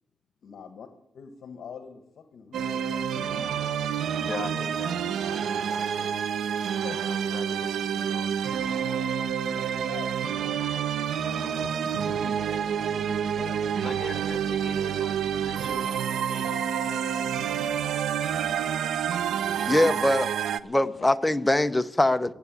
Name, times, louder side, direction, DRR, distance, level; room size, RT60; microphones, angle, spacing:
voice 1, 0.4-0.9 1.1-4.6 6.8-7.0 9.8-10.8 11.2-14.2 20.8-21.1, left 6 dB, 65° left, 7 dB, 1.3 m, -44 dB
sound 1, 2.5-20.6, right 8 dB, 85° right, 0.6 m, -28 dB
voice 2, 4.2-6.2 7.0-8.3 13.8-17.4, left 4 dB, 40° left, 7 dB, 1.2 m, -42 dB
voice 3, 19.7-20.3 20.6-22.3, left 1 dB, 10° left, 10 dB, 0.7 m, -22 dB
15.0 x 8.2 x 8.9 m, 0.90 s
cardioid pair, 130°, 0 cm